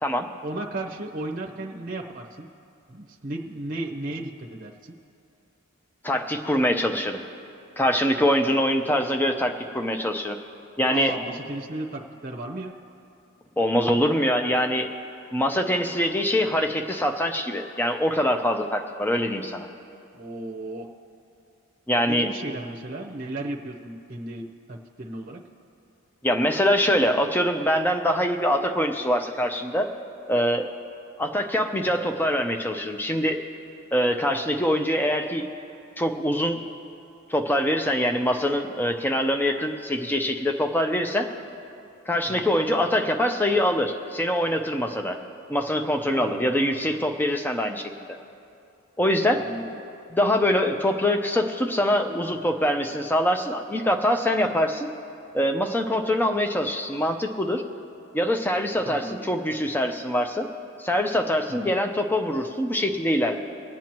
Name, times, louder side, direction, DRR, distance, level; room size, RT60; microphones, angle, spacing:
voice 1, 0.4-2.5 2.9-4.9 10.9-12.8 20.1-20.9 22.0-25.4 42.3-42.5 46.1-46.5 49.3-49.8 58.8-59.3 61.5-61.8, right 2 dB, 40° right, 3 dB, 0.8 m, -35 dB
voice 2, 6.0-7.2 7.8-10.4 10.8-11.1 13.6-14.9 15.3-19.7 21.9-22.3 26.2-29.9 30.3-30.7 31.2-33.4 33.9-35.5 36.0-36.6 37.3-41.3 42.1-45.2 45.5-47.9 49.0-49.4 50.1-54.9 55.3-57.6 58.1-60.5 60.8-63.4, equal, 10° left, 5 dB, 0.6 m, -24 dB
25.5 x 8.9 x 3.0 m, 2.6 s
head